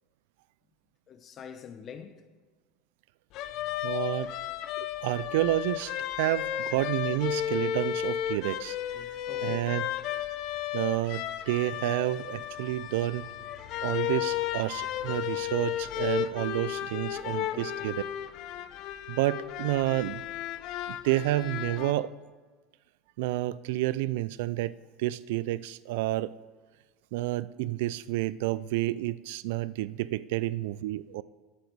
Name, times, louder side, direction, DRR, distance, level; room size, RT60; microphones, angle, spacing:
voice 1, 1.1-2.2 6.2-6.8 7.7-7.8 8.9-9.8 12.6-12.9 13.5-14.2 15.5-16.4 17.5-17.9, left 7 dB, 35° left, 0.9 m, -49 dB
sound 1, 3.3-21.9, left 11 dB, 55° left, 0.6 m, -34 dB
voice 2, 3.8-4.3 4.8-8.8 9.4-9.8 10.7-13.3 13.8-18.0 19.1-20.2 20.9-22.1 23.2-24.7 25.0-26.3 27.1-31.2, right 16 dB, 80° right, 0.3 m, -30 dB
sound 2, 9.9-16.7, left 6 dB, 85° left, 2.8 m, -56 dB
12.0 x 8.0 x 4.7 m
supercardioid pair, 130°, 0 cm